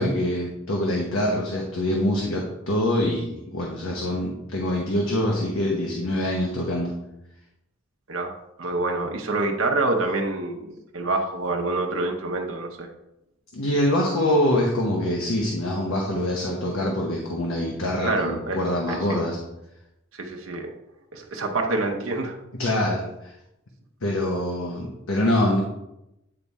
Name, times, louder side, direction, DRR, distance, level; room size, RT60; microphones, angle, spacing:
voice 1, 0.0-6.9 13.5-19.4 22.6-23.3 24.0-25.6, left 1 dB, 80° left, -1 dB, 1.0 m, -24 dB
voice 2, 8.6-12.9 18.0-19.2 20.2-20.7 21.1-22.4, right 2 dB, 75° right, 2 dB, 0.8 m, -27 dB
9.0 x 3.5 x 4.1 m, 0.88 s
head